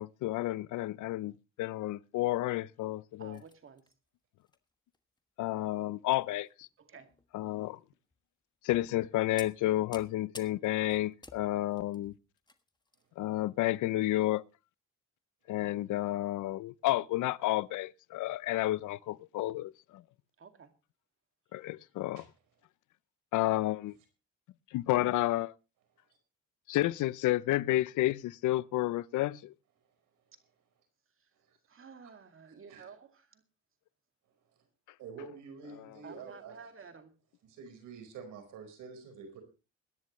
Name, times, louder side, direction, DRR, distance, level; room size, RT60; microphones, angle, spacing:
voice 1, 0.0-3.4 5.4-6.7 7.3-7.8 8.6-12.1 13.2-14.4 15.5-20.0 21.5-22.2 23.3-24.0 24.7-25.5 26.7-29.5, left 16 dB, 80° left, 0.6 m, -31 dB
voice 2, 3.2-3.9 6.8-7.1 20.4-20.7 31.2-31.3 31.7-33.4 36.0-37.1, right 5 dB, 45° right, 2.3 m, -52 dB
sound 1, 3.3-3.9 4.4-4.6 4.9-5.2 6.2-6.5 7.1-7.3 8.1-8.2 8.7-9.0 9.4-13.1 13.3-13.5 14.1-14.2, left 2 dB, 15° left, 1.3 m, -53 dB
voice 3, 32.5-32.8 35.0-36.6 37.4-39.4, right 5 dB, 85° right, 4.7 m, -47 dB
22.0 x 10.5 x 3.1 m
cardioid pair, 90°, 30 cm